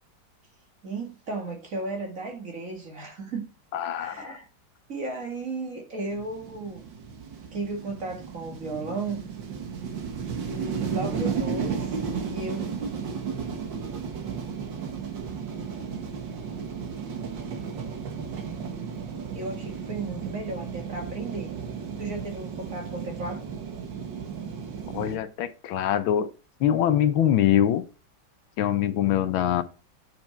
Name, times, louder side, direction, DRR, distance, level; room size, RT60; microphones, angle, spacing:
voice 1, 0.8-3.5 4.0-4.5 4.9-6.8 7.5-9.2 10.4-11.9 12.3-12.6 19.3-21.5 22.0-23.4, right 3 dB, 40° right, 2.1 m, -34 dB
voice 2, 3.7-4.4 24.9-26.3 26.6-27.8 28.6-29.6, left 10 dB, 75° left, 1.5 m, -23 dB
sound 1, 6.1-25.2, right 6 dB, 65° right, 2.0 m, -34 dB
8.8 x 6.0 x 4.4 m
omnidirectional pair, 2.2 m